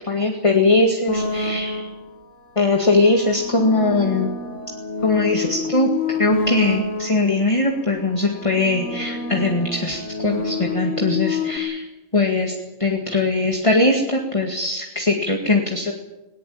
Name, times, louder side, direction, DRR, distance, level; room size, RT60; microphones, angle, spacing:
voice 1, 0.1-1.9 2.6-4.3 5.0-11.8 12.1-12.5 12.8-15.9, left 2 dB, 25° left, 2 dB, 2.2 m, -20 dB
sound 1, 1.1-2.2 2.9-7.4 8.2-11.6, left 3 dB, 65° left, 2.3 m, -28 dB
20.5 x 19.0 x 8.6 m, 1.0 s
omnidirectional pair, 1.4 m